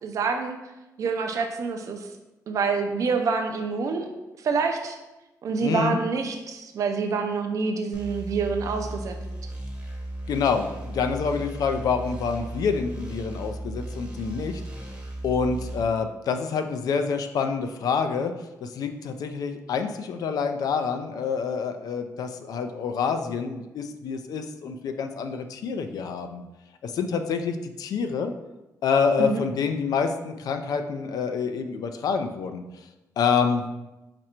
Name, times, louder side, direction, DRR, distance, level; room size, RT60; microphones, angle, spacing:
voice 1, 0.0-0.6 1.0-2.1 2.5-4.1 4.4-5.0 5.4-9.2 29.2-29.4, right 4 dB, 55° right, 5 dB, 0.4 m, -27 dB
voice 2, 5.6-6.0 10.3-14.9 15.2-26.4 26.8-28.3 28.8-32.8 33.2-33.6, left 5 dB, 75° left, 7 dB, 0.4 m, -27 dB
sound 1, 7.9-15.8, right 1 dB, 15° right, 0.8 m, -36 dB
4.3 x 2.5 x 4.3 m, 1.0 s
cardioid pair, 130°, 7 cm